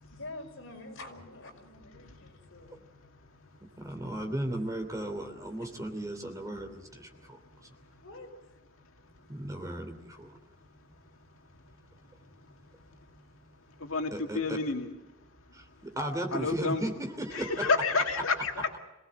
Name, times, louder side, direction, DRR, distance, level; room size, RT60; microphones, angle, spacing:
voice 1, 0.0-2.8 5.6-5.7 8.0-8.3, left 2 dB, 65° left, 5.6 m, -46 dB
voice 2, 2.0-2.3 7.5-7.6 7.9-8.0 12.8-12.9 13.8-14.9 16.3-16.8 17.3-18.7, left 4 dB, 85° left, 2.1 m, -30 dB
voice 3, 3.8-7.7 9.3-10.4 14.1-14.6 15.5-17.7, right 1 dB, 15° right, 3.0 m, -36 dB
27.0 x 18.0 x 7.8 m
head